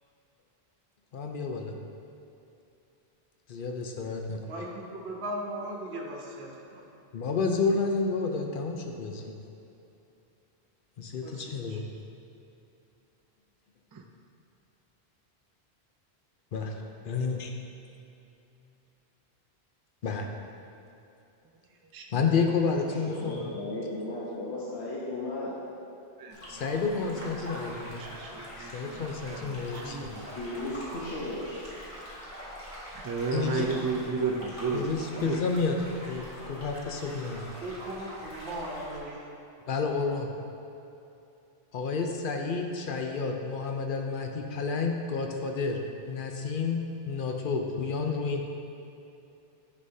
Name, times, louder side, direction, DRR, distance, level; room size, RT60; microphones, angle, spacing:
voice 1, 1.1-1.8 3.5-4.4 7.1-9.3 11.0-11.8 16.5-16.7 17.0-17.5 20.0-20.3 22.1-23.4 26.5-28.0 28.7-30.2 33.3-33.7 34.7-35.8 36.0-37.4 39.7-40.3 41.7-45.8 46.1-48.4, left 4 dB, 60° left, 3 dB, 0.8 m, -30 dB
voice 2, 4.5-6.8 11.2-11.8 37.6-39.3, right 1 dB, 80° right, -1 dB, 1.1 m, -38 dB
voice 3, 21.9-22.3 26.2-26.7 27.2-27.6 28.0-28.3 28.6-30.2 32.9-34.9 35.2-35.4, right 4 dB, 35° right, 2 dB, 0.3 m, -33 dB
voice 4, 23.1-25.5 30.1-31.6, left 2 dB, 85° left, -7 dB, 1.2 m, -35 dB
sound 1, 26.3-39.0, equal, 30° left, 1.4 m, -44 dB
9.7 x 5.4 x 2.8 m, 2.8 s
omnidirectional pair, 1.1 m